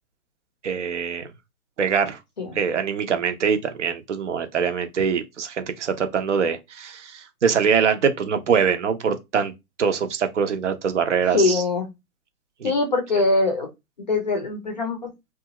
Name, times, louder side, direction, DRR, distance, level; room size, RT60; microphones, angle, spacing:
voice 1, 0.6-1.2 1.8-2.2 2.6-9.5 9.8-11.6 12.6-12.7, right 6 dB, 50° right, 0.6 m, -23 dB
voice 2, 11.3-11.9 12.6-13.7 14.1-15.1, left 3 dB, 30° left, 0.5 m, -22 dB
2.6 x 2.4 x 2.8 m
hypercardioid pair, 140°, 47 cm